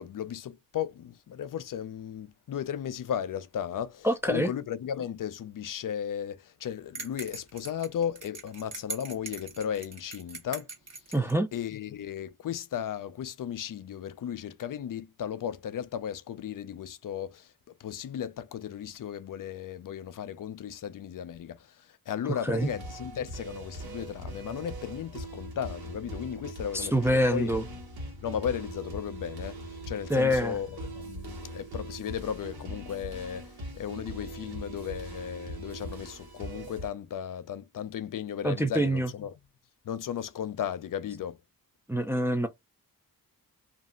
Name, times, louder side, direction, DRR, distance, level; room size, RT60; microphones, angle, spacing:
voice 1, 0.0-10.7 11.5-17.5 17.8-27.5 28.2-39.3 39.8-41.4, left 9 dB, 60° left, 0.5 m, -35 dB
voice 2, 4.0-4.5 11.1-11.5 22.3-22.7 26.7-27.6 30.1-30.6 38.4-39.1 41.9-42.5, equal, 5° right, 0.4 m, -25 dB
sound 1, 7.0-11.4, right 3 dB, 45° right, 0.9 m, -41 dB
sound 2, 22.5-36.9, right 1 dB, 80° right, 1.1 m, -41 dB
2.5 x 2.0 x 3.6 m
cardioid pair, 60°, 37 cm